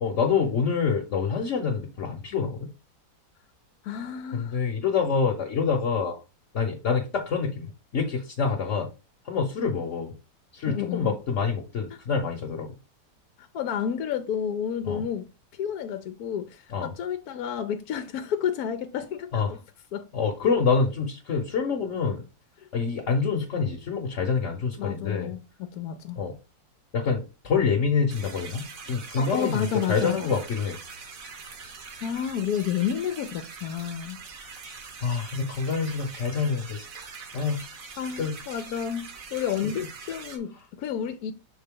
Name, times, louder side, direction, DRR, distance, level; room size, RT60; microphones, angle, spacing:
voice 1, 0.0-2.7 4.3-6.2 6.5-8.9 9.2-10.1 10.5-12.7 14.8-15.0 16.7-16.9 19.3-19.6 20.1-22.2 22.7-25.3 26.2-26.4 26.9-30.8 35.0-36.9 37.3-37.6 38.2-38.4 39.6-39.7, left 5 dB, 50° left, 1.2 m, -26 dB
voice 2, 3.8-4.6 10.6-11.2 11.9-12.0 13.4-15.3 15.5-19.6 19.9-20.1 24.8-26.2 29.2-30.3 31.6-34.2 38.0-41.3, left 8 dB, 70° left, 1.0 m, -31 dB
sound 1, 28.1-40.4, right 5 dB, 55° right, 1.3 m, -43 dB
6.7 x 3.9 x 3.7 m
omnidirectional pair, 1.9 m